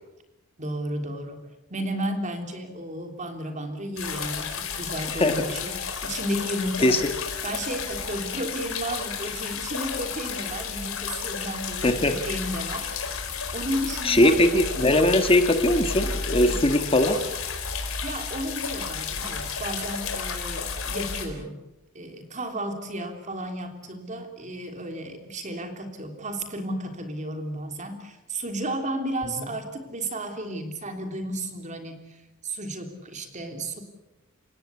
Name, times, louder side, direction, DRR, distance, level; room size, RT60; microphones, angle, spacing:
voice 1, 0.6-7.0 7.4-12.9 13.5-14.4 15.1-15.2 16.4-16.6 18.0-21.6 21.9-33.8, right 1 dB, 35° right, 6 dB, 3.3 m, -33 dB
sound 1, 4.0-21.3, left 5 dB, 90° left, 4.5 m, -32 dB
voice 2, 11.8-12.1 14.0-17.2, left 1 dB, 25° left, 7 dB, 1.6 m, -20 dB
29.5 x 17.0 x 8.3 m, 1.0 s
head